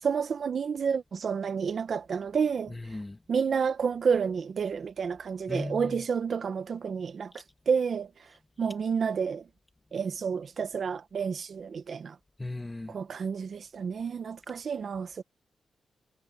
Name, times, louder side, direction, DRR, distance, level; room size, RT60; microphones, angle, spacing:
voice 1, 0.0-3.0 3.3-9.4 9.9-12.2 12.9-15.2, right 6 dB, 55° right, 0.8 m, -30 dB
voice 2, 2.7-3.2 5.5-6.0 12.4-13.0, left 2 dB, 15° left, 2.0 m, -37 dB
wide cardioid pair, 125°, 0 cm